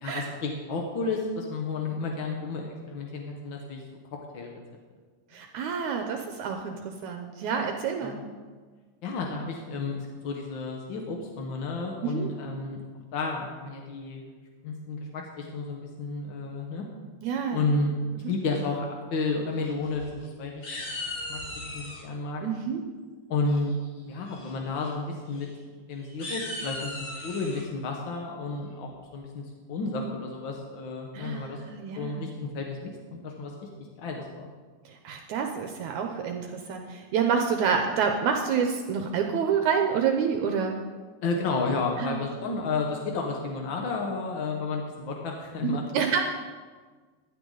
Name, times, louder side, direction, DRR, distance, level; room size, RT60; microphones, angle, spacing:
voice 1, 0.0-3.8 4.1-4.6 8.0-8.2 9.0-12.8 13.1-14.2 14.6-16.8 17.5-17.9 18.3-20.6 21.3-21.4 21.7-22.4 23.3-23.8 24.1-25.5 25.9-29.4 29.7-31.6 31.9-33.5 34.0-34.5 41.2-45.8, left 3 dB, 60° left, 1 dB, 1.3 m, -31 dB
voice 2, 5.3-8.2 12.0-12.3 17.2-17.7 18.2-18.3 22.4-22.8 31.1-32.3 35.0-40.8 42.0-42.2 45.6-46.2, right 6 dB, 75° right, 4 dB, 2.0 m, -28 dB
sound 1, 19.7-20.3 20.6-22.0 23.5-23.9 24.3-24.5 24.8-24.9 25.3-25.4 26.0-27.6, left 2 dB, 85° left, 5.7 m, -37 dB
15.5 x 11.0 x 3.9 m, 1.5 s
omnidirectional pair, 3.8 m